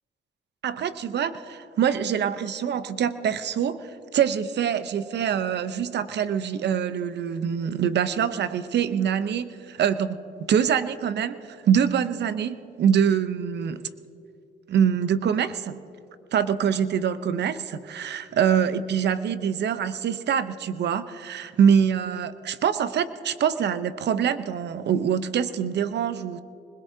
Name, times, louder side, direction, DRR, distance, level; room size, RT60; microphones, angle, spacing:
voice 1, 0.6-10.2 10.5-13.9 14.7-15.8 16.3-26.4, right 8 dB, 60° right, 13 dB, 0.8 m, -24 dB
25.5 x 20.5 x 2.8 m, 2.5 s
cardioid pair, 90°, 20 cm